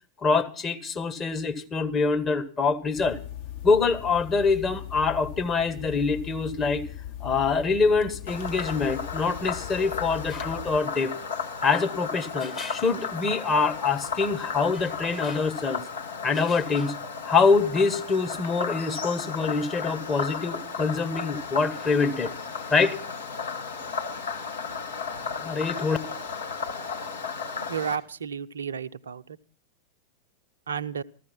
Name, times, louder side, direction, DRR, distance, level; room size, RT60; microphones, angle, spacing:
voice 1, 0.2-3.2 3.6-6.8 7.2-11.1 11.6-15.8 16.2-17.0 17.2-22.3 22.7-23.0 25.4-26.0, left 4 dB, 25° left, 6 dB, 1.6 m, -25 dB
sound 1, 3.0-10.8, left 11 dB, 50° left, 1.9 m, -39 dB
Frog, 8.3-28.0, left 5 dB, 70° left, 1.8 m, -34 dB
voice 2, 27.6-29.2 30.7-31.0, right 7 dB, 70° right, 14 dB, 0.6 m, -32 dB
14.5 x 14.5 x 5.7 m, 0.39 s
figure-of-eight pair, 90°, 0 cm